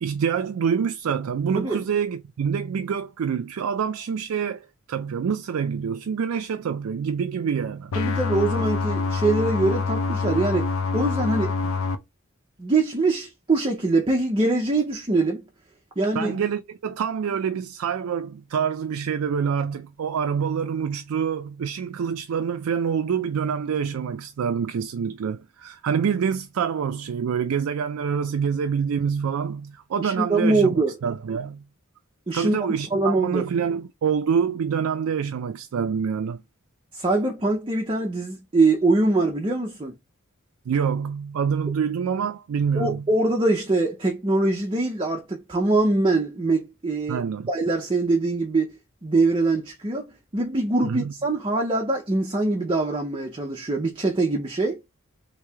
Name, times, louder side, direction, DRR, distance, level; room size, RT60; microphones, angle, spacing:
voice 1, 0.0-7.9 16.1-31.7 32.3-36.4 40.7-43.1 47.1-47.5 50.8-51.1, right 7 dB, 75° right, 0.4 m, -26 dB
sound 1, 7.9-12.0, left 4 dB, 80° left, 0.5 m, -25 dB
voice 2, 8.0-11.7 12.6-15.4 16.0-16.4 30.0-30.9 32.3-32.6 32.9-33.4 36.9-39.9 42.8-47.2 47.5-48.7 49.0-50.1 50.3-54.8, right 2 dB, 25° right, 0.5 m, -23 dB
3.1 x 2.7 x 3.3 m
head